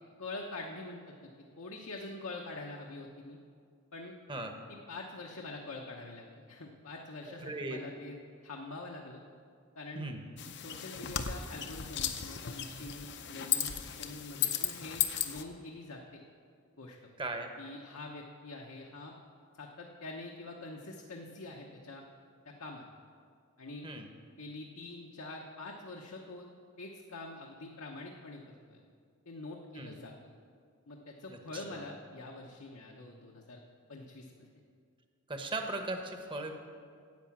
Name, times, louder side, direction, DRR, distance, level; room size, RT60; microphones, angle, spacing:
voice 1, 0.2-1.3 1.6-3.4 3.9-4.1 4.7-8.2 8.4-9.2 9.8-10.1 10.6-16.2 16.8-17.1 17.6-19.2 19.5-22.0 22.4-22.8 23.6-23.9 24.4-26.5 26.8-28.8 29.3-30.1 30.9-33.6 33.9-34.5, left 2 dB, 70° left, 0 dB, 1.0 m, -45 dB
voice 2, 7.3-7.8 9.9-10.2 17.2-17.5 23.8-24.1 29.7-30.0 31.3-31.8 35.3-36.5, right 2 dB, 20° right, 5 dB, 1.0 m, -38 dB
sound 1, 10.4-15.4, left 10 dB, 50° left, 0.7 m, -35 dB
10.5 x 8.5 x 7.2 m, 2.2 s
head